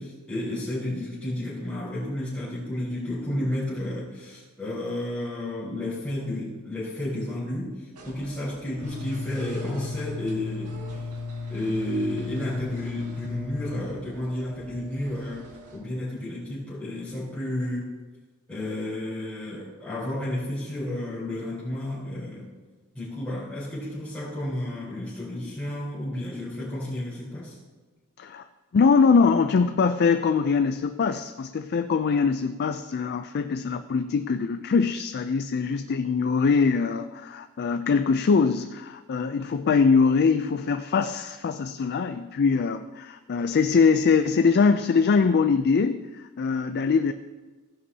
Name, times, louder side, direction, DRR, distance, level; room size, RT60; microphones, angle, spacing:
voice 1, 0.0-11.1 11.5-17.9 18.5-22.5 22.9-27.6, left 1 dB, 5° left, -13 dB, 4.0 m, -32 dB
sound 1, 7.9-15.8, right 3 dB, 85° right, 2.1 m, -48 dB
sound 2, 8.8-13.8, left 4 dB, 80° left, 0.7 m, -35 dB
voice 2, 28.7-47.1, left 5 dB, 45° left, 10 dB, 0.4 m, -22 dB
15.5 x 10.5 x 2.8 m, 1.3 s
head